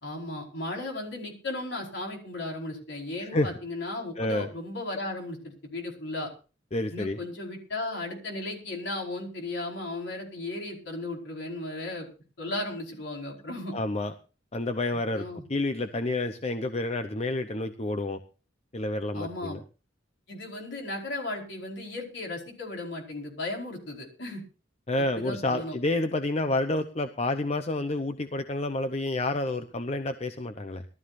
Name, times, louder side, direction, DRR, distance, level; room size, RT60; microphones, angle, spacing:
voice 1, 0.0-6.3 6.9-12.1 12.4-13.8 15.1-15.4 19.1-19.6 20.3-24.4 25.0-25.8, left 2 dB, 65° left, 0 dB, 4.9 m, -35 dB
voice 2, 4.2-4.5 6.7-7.2 13.7-14.1 14.5-15.2 15.5-18.2 18.7-19.6 24.9-30.9, left 2 dB, 35° left, 8 dB, 0.8 m, -29 dB
21.5 x 13.0 x 2.6 m, 0.34 s
head